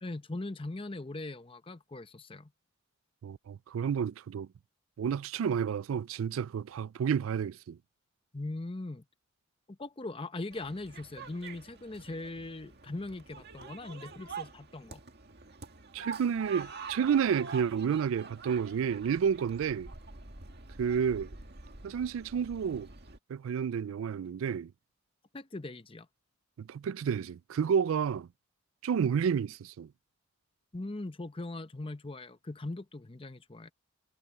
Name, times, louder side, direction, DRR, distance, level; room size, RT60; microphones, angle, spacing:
voice 1, 0.0-2.5 8.3-9.0 9.7-15.0 25.3-26.1 30.7-33.7, left 2 dB, 25° left, 0.8 m, -40 dB
voice 2, 3.2-4.5 5.0-7.8 15.9-19.9 20.8-21.4 21.8-22.9 23.3-24.7 26.6-28.3 28.8-29.9, right 7 dB, 75° right, 0.3 m, -30 dB
sound 1, 10.5-23.2, right 4 dB, 50° right, 2.0 m, -46 dB
head